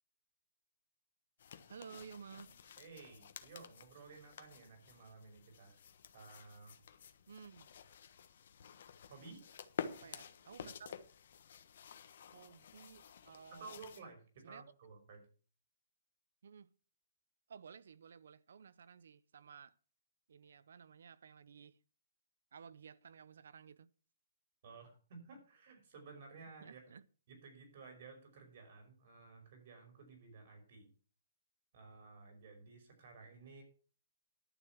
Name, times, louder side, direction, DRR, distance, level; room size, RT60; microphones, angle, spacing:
sound 1, 1.4-14.0, left 7 dB, 65° left, 1.3 m, -51 dB
voice 1, 1.7-2.6 7.3-7.7 9.9-10.9 12.3-13.8 14.4-14.6 16.4-16.7 17.5-19.7 20.3-21.8 22.5-23.9 26.6-27.0, right 6 dB, 80° right, 0.6 m, -55 dB
voice 2, 2.8-5.8 6.1-6.8 9.1-9.4 13.5-15.3 24.6-26.8 27.3-30.9 31.7-33.6, right 4 dB, 55° right, 5.5 m, -55 dB
11.5 x 7.1 x 6.0 m
hypercardioid pair, 145°, 0 cm